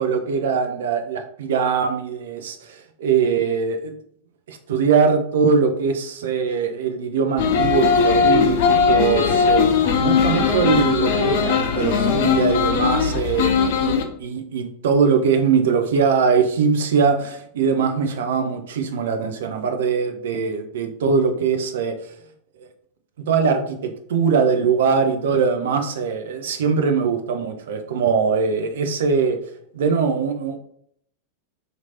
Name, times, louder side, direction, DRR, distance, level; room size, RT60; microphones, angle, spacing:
voice 1, 0.0-4.0 4.5-13.9 14.2-21.9 23.3-29.4 29.7-30.6, right 5 dB, 60° right, 6 dB, 0.5 m, -21 dB
sound 1, 7.4-14.0, left 6 dB, 50° left, 0.5 m, -19 dB
2.9 x 2.6 x 4.1 m, 0.66 s
figure-of-eight pair, 90°, 0 cm